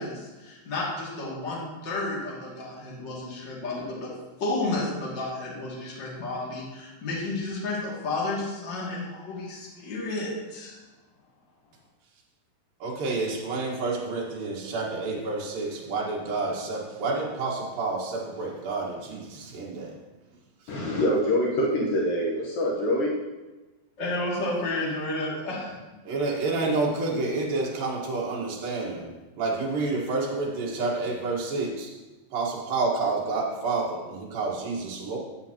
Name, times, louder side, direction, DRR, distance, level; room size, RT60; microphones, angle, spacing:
voice 1, 0.0-4.1 4.4-10.8 24.0-25.8, left 2 dB, 35° left, -5 dB, 2.7 m, -31 dB
voice 2, 12.8-19.9 26.1-29.1 29.4-31.9 32.3-35.2, right 3 dB, 75° right, -3 dB, 3.4 m, -29 dB
voice 3, 20.7-23.1, equal, 75° left, -4 dB, 2.8 m, -25 dB
14.5 x 7.9 x 3.0 m, 1.2 s
omnidirectional pair, 4.1 m